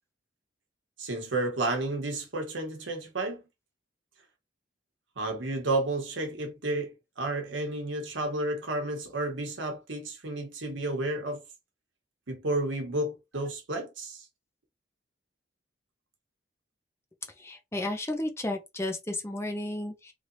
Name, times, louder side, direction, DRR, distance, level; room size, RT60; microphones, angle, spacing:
voice 1, 1.0-3.4 5.2-11.4 12.3-14.2, right 2 dB, 85° right, 1.1 m, -31 dB
voice 2, 17.4-20.1, left 1 dB, 15° left, 0.6 m, -33 dB
3.2 x 2.9 x 2.6 m
head